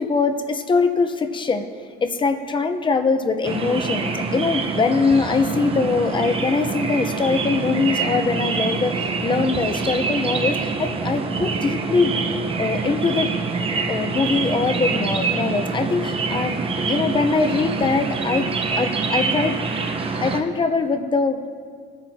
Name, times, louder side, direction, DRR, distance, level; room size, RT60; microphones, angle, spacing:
voice 1, 0.0-1.7 2.0-12.3 12.6-13.3 13.9-19.6 20.2-21.5, left 4 dB, 30° left, 7 dB, 0.9 m, -22 dB
sound 1, 3.4-20.4, right 4 dB, 35° right, 1.0 m, -25 dB
20.5 x 10.0 x 2.9 m, 2.1 s
cardioid pair, 110°, 17 cm